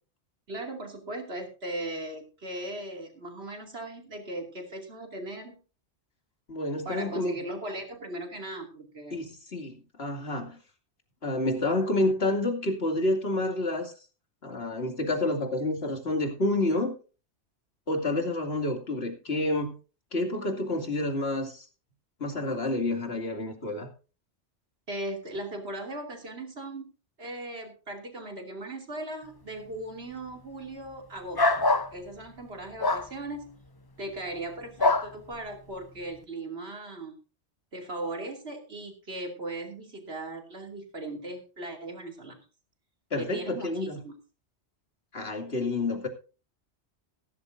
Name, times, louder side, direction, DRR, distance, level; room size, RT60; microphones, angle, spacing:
voice 1, 0.5-5.6 6.8-9.2 24.9-26.9 27.2-31.6 31.9-33.6 34.0-37.2 37.7-42.4 43.2-44.2, right 1 dB, 65° right, 3 dB, 3.1 m, -38 dB
voice 2, 6.5-7.4 9.1-10.6 11.2-13.9 14.4-17.0 17.9-19.7 20.1-21.7 22.2-23.9 43.1-44.0 45.1-46.1, left 2 dB, 60° left, 4 dB, 2.9 m, -29 dB
sound 1, 31.4-31.9 32.8-33.1 34.8-35.1, left 2 dB, 25° left, 0.6 m, -23 dB
16.0 x 13.5 x 2.7 m, 0.34 s
omnidirectional pair, 1.2 m